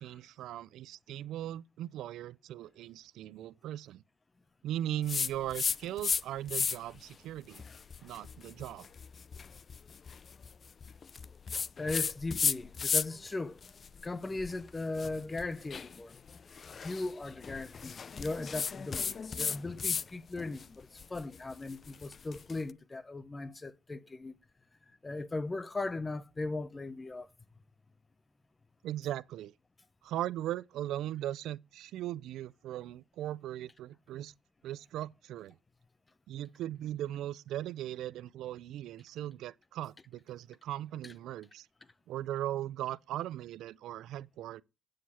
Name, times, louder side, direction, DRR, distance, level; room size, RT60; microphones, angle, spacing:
voice 1, 0.0-4.0 4.6-7.6 8.0-8.9 28.8-29.5 30.0-34.3 34.6-35.6 36.3-41.7 42.1-44.6, right 13 dB, 85° right, 0.4 m, -38 dB
sound 1, 5.1-6.2 6.5-7.0 7.5-13.3 13.6-20.1 20.4-22.6, left 6 dB, 45° left, 0.4 m, -35 dB
voice 2, 11.5-13.6 14.0-16.2 16.8-24.3 25.0-27.3, left 2 dB, 25° left, 0.7 m, -38 dB
9.3 x 6.4 x 4.2 m
cardioid pair, 90°, 0 cm